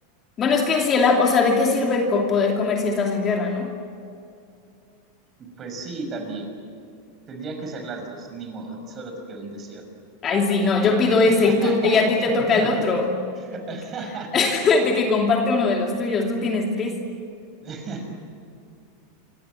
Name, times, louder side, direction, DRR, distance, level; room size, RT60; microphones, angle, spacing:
voice 1, 0.4-3.7 10.2-13.1 14.3-17.0, left 3 dB, 25° left, 1 dB, 2.7 m, -20 dB
voice 2, 5.4-6.5 7.3-9.8 11.3-12.7 13.4-14.7 17.6-18.1, right 3 dB, 25° right, 4 dB, 6.3 m, -35 dB
28.5 x 25.5 x 7.7 m, 2.5 s
supercardioid pair, 155°, 0 cm